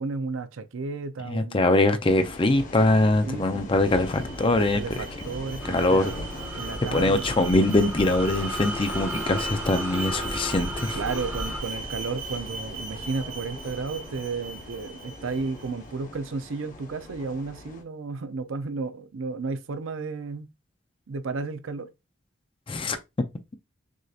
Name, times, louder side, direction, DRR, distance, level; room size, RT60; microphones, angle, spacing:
voice 1, 0.0-1.7 3.3-3.8 4.7-6.1 6.5-7.3 10.9-20.5 21.1-21.9, right 4 dB, 85° right, 0.5 m, -33 dB
voice 2, 1.3-4.8 5.7-6.1 6.9-11.0 22.7-23.0, left 2 dB, 25° left, 0.5 m, -22 dB
sound 1, 2.0-17.8, left 2 dB, 40° left, 1.1 m, -41 dB
Alarm, 3.6-15.7, right 3 dB, 50° right, 1.5 m, -38 dB
sound 2, 5.6-11.6, equal, 10° right, 0.9 m, -35 dB
6.2 x 2.8 x 2.4 m
head